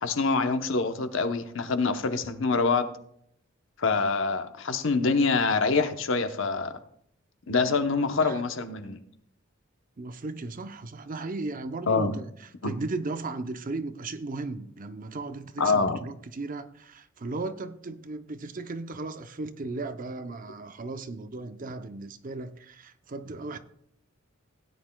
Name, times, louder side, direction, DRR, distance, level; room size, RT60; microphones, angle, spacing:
voice 1, 0.0-2.9 3.8-6.7 7.5-9.0 11.9-12.1 12.6-12.7 15.6-16.0, left 4 dB, 65° left, 0.9 m, -25 dB
voice 2, 10.0-23.6, right 3 dB, 40° right, 0.6 m, -36 dB
17.0 x 9.5 x 2.3 m
head